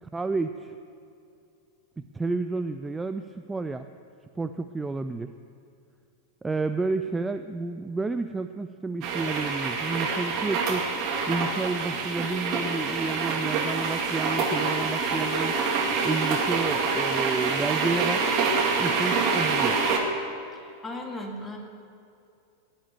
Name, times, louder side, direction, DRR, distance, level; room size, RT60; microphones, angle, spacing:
voice 1, 0.0-0.7 2.1-3.9 4.4-5.3 6.4-10.9 11.3-15.5 16.0-18.3 18.8-19.8, right 3 dB, 10° right, 9 dB, 0.4 m, -30 dB
sound 1, 9.0-20.0, right 4 dB, 40° right, 2.1 m, -26 dB
voice 2, 20.5-21.6, left 1 dB, 15° left, 1 dB, 2.3 m, -37 dB
16.0 x 10.5 x 6.8 m, 2.5 s
figure-of-eight pair, 90°, 0 cm